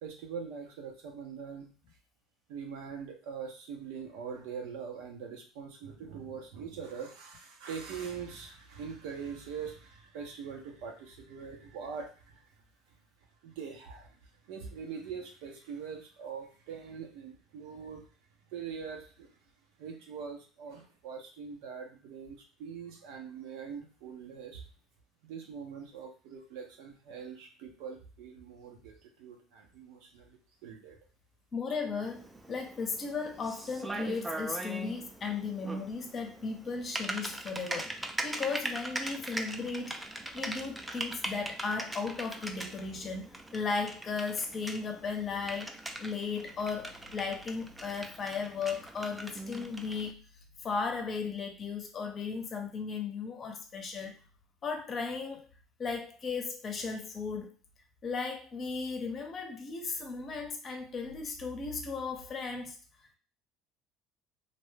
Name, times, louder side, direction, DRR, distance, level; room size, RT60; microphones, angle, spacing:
voice 1, 0.0-1.7 2.5-12.4 13.4-14.1 14.5-18.0 18.5-19.3 19.8-24.6 25.2-31.0, right 6 dB, 80° right, 2 dB, 0.8 m, -43 dB
voice 2, 31.5-37.9 38.2-50.1 50.6-54.2 54.6-55.5 55.8-57.5 58.0-62.8, left 4 dB, 40° left, 4 dB, 0.7 m, -36 dB
Typing, 32.0-50.1, right 1 dB, 10° right, 0.4 m, -41 dB
2.6 x 2.2 x 3.2 m, 0.37 s
supercardioid pair, 100°, 0 cm